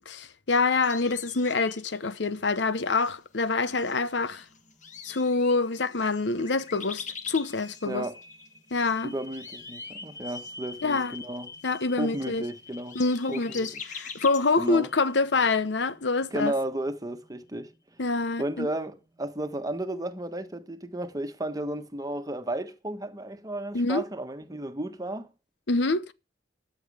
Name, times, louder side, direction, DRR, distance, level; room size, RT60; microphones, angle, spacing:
voice 1, 0.1-4.4 5.0-8.1 8.7-9.1 10.8-11.1 11.6-12.4 12.9-16.5 18.0-18.7 23.7-24.0 25.7-26.1, left 3 dB, 75° left, 0.9 m, -26 dB
sound 1, 0.8-2.1 2.7-3.1 3.7-8.9 9.2-14.8, left 6 dB, 45° left, 1.4 m, -44 dB
sound 2, 3.7-21.0, left 2 dB, 15° left, 3.8 m, -50 dB
voice 2, 7.9-8.2 9.0-11.5 12.0-13.0 13.3-13.7 14.6-14.9 16.3-17.7 18.4-25.3, right 1 dB, 20° right, 1.4 m, -33 dB
14.0 x 9.1 x 5.0 m
head